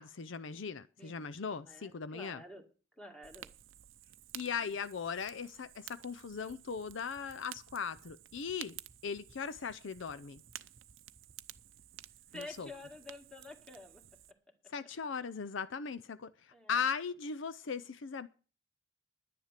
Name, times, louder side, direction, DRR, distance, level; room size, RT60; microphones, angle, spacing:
voice 1, 0.0-2.4 4.3-10.4 12.3-12.7 14.7-18.3, left 6 dB, 65° left, 0.5 m, -39 dB
voice 2, 1.0-2.6 3.0-3.5 4.5-4.7 12.3-14.0 16.5-16.8, left 2 dB, 5° left, 2.0 m, -50 dB
Fire, 3.2-14.3, right 13 dB, 70° right, 0.6 m, -53 dB
sound 1, 6.5-11.6, right 2 dB, 35° right, 0.8 m, -62 dB
10.5 x 10.0 x 7.4 m
head